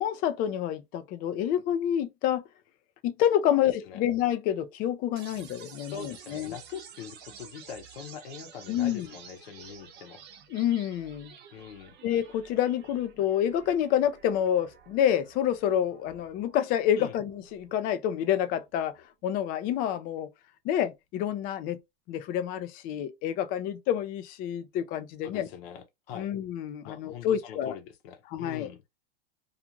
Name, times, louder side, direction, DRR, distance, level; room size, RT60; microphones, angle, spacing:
voice 1, 0.0-2.4 3.0-6.6 8.7-9.1 10.5-11.3 12.0-19.0 19.2-20.3 20.6-21.8 22.1-25.5 26.1-27.7 28.3-28.7, left 10 dB, 30° left, 0.3 m, -28 dB
voice 2, 3.5-4.0 5.9-10.2 11.5-11.9 17.0-17.2 25.2-26.3 26.8-28.8, left 7 dB, 65° left, 0.8 m, -43 dB
sound 1, 5.2-19.1, right 8 dB, 30° right, 0.7 m, -52 dB
2.5 x 2.4 x 2.8 m
hypercardioid pair, 125°, 32 cm